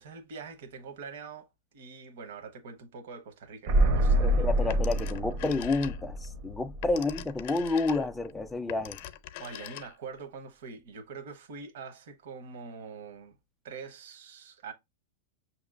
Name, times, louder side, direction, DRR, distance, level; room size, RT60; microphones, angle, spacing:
voice 1, 0.0-1.5 1.7-4.8 6.9-7.0 9.4-13.4 13.6-14.7, right 5 dB, 65° right, 0.9 m, -44 dB
sound 1, 3.7-7.4 7.7-7.8, right 1 dB, 50° right, 0.6 m, -27 dB
voice 2, 4.2-9.0, left 3 dB, 5° left, 0.3 m, -30 dB
Telephone, 4.7-6.3 6.6-10.2, left 13 dB, 50° left, 0.5 m, -43 dB
6.0 x 2.9 x 2.4 m
supercardioid pair, 150°, 0 cm